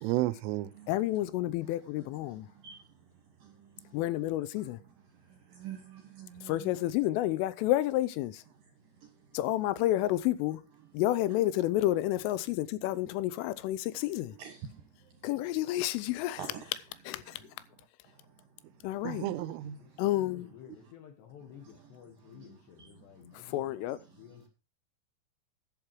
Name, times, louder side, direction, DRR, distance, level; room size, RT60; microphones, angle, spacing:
voice 1, 0.0-0.7 19.0-19.8, right 16 dB, 85° right, 3.2 m, -31 dB
voice 2, 0.9-2.5 3.9-4.8 6.5-8.4 9.3-10.6 10.9-14.3 15.2-16.4 17.1-17.3 18.8-19.3 20.0-20.5 23.5-24.0, left 15 dB, 85° left, 3.2 m, -30 dB
voice 3, 5.5-6.7 9.0-9.1 14.4-14.8 16.4-16.6 19.1-19.2 22.3-22.9, right 8 dB, 65° right, 2.3 m, -45 dB
voice 4, 19.8-23.7 24.1-24.5, left 9 dB, 65° left, 3.6 m, -53 dB
11.0 x 8.2 x 4.6 m
omnidirectional pair, 5.8 m